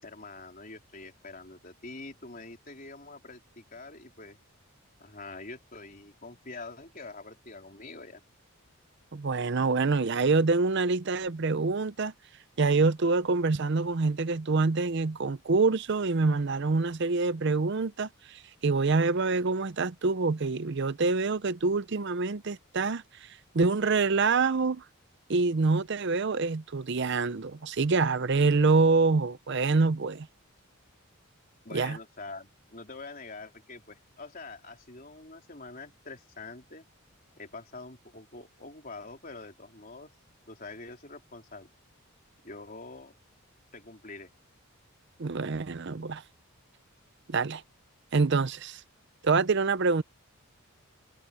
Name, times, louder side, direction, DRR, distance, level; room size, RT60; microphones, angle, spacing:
voice 1, 0.0-4.4 5.0-8.2 27.1-27.2 31.6-36.9 37.4-40.1 40.5-41.7 42.4-43.1 43.7-44.3, left 3 dB, 40° left, 3.9 m, -45 dB
voice 2, 9.1-12.1 12.6-23.3 23.5-24.8 25.3-30.3 31.7-32.0 45.2-46.2 47.3-47.6 48.1-48.8 49.2-50.0, right 4 dB, 50° right, 0.6 m, -26 dB
head